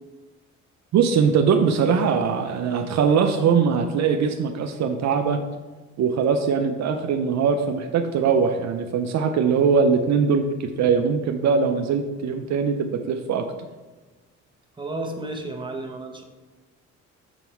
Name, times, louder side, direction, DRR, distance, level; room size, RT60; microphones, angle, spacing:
voice 1, 0.9-5.4 6.0-13.5, right 6 dB, 65° right, 5 dB, 0.6 m, -21 dB
voice 2, 14.8-16.2, right 2 dB, 15° right, 1 dB, 1.1 m, -32 dB
7.1 x 3.8 x 4.4 m, 1.2 s
cardioid pair, 90°, 30 cm